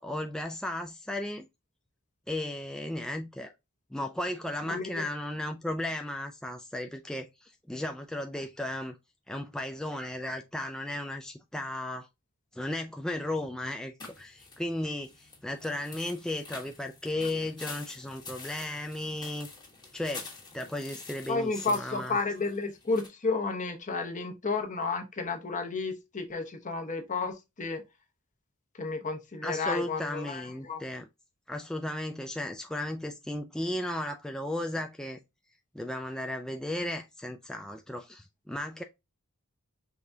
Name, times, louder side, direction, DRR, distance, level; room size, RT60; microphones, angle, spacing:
voice 1, 0.0-1.4 2.3-3.5 3.9-9.0 9.3-12.1 12.5-19.5 19.9-22.2 29.4-31.1 31.5-35.2 35.7-38.8, left 1 dB, 5° left, 0.3 m, -35 dB
voice 2, 4.6-5.1 21.3-27.8 28.8-30.8, left 3 dB, 35° left, 1.0 m, -32 dB
sound 1, 14.0-23.1, left 4 dB, 20° left, 1.2 m, -47 dB
4.9 x 3.5 x 2.6 m
head